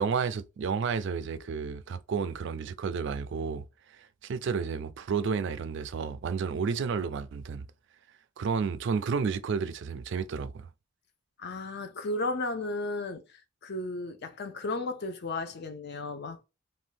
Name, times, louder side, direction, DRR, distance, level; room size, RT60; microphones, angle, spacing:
voice 1, 0.0-3.6 4.0-7.6 8.4-10.7, right 5 dB, 65° right, 0.4 m, -31 dB
voice 2, 11.4-16.4, left 2 dB, 55° left, 0.5 m, -34 dB
2.6 x 2.2 x 3.2 m
head